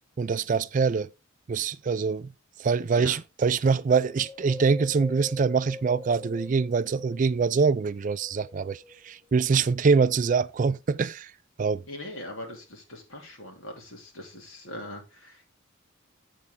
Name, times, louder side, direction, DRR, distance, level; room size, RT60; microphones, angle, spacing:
voice 1, 0.2-1.1 1.5-2.3 2.6-11.3 11.6-11.8, right 5 dB, 40° right, 0.3 m, -24 dB
Wind, 4.0-7.5 8.1-9.3 9.9-10.0, left 1 dB, 15° right, 2.4 m, -42 dB
voice 2, 11.9-15.5, left 1 dB, 75° left, 2.8 m, -41 dB
8.3 x 6.6 x 3.7 m
head